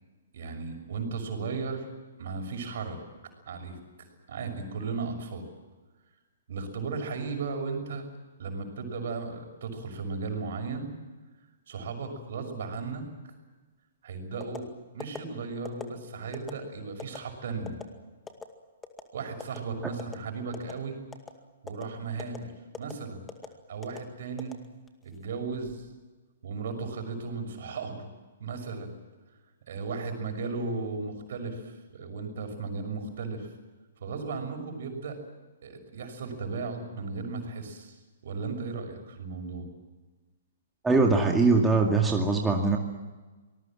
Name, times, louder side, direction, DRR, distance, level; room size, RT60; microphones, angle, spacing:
voice 1, 0.3-1.9 2.2-3.0 3.5-5.4 6.5-8.0 8.4-10.9 11.7-13.0 14.0-14.7 14.9-17.8 19.1-21.0 21.6-22.5 22.8-23.2 23.7-24.6 25.0-25.9 26.4-28.1 28.4-28.9 29.7-33.5 34.0-35.2 35.6-39.7, right 4 dB, 55° right, 5 dB, 6.2 m, -35 dB
sound 1, 14.4-14.6 15.0-15.2 15.7-15.9 16.3-16.5 17.0-17.2 17.7-17.8 18.3-18.5 18.8-19.1 19.4-19.6 20.0-20.2 20.5-20.8 21.1-21.3 21.7-21.8 22.2-22.4 22.7-22.9 23.3-23.5 23.8-24.0 24.4-25.0 25.5-25.8, left 5 dB, 10° left, 2.1 m, -40 dB
voice 2, 40.8-42.8, right 3 dB, 5° right, 0 dB, 2.3 m, -22 dB
26.0 x 20.0 x 7.6 m, 1.3 s
figure-of-eight pair, 120°, 0 cm